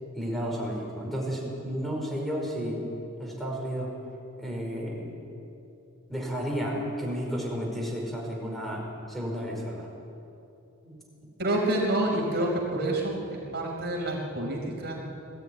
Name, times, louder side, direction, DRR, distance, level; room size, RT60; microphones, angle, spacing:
voice 1, 0.1-2.8 3.2-3.9 4.4-5.2 6.1-9.9 10.8-11.0, equal, ahead, -2 dB, 4.8 m, -32 dB
voice 2, 11.4-13.2 13.5-15.1, right 1 dB, 55° right, -1 dB, 4.4 m, -28 dB
20.0 x 14.0 x 9.5 m, 2.8 s
head